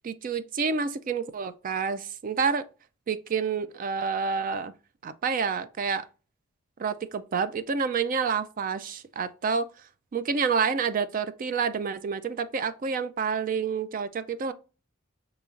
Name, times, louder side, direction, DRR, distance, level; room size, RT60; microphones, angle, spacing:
voice 1, 0.0-2.7 3.1-4.7 5.0-6.1 6.8-9.7 10.1-14.5, right 5 dB, 40° right, 0.3 m, -28 dB
6.9 x 3.0 x 2.4 m
head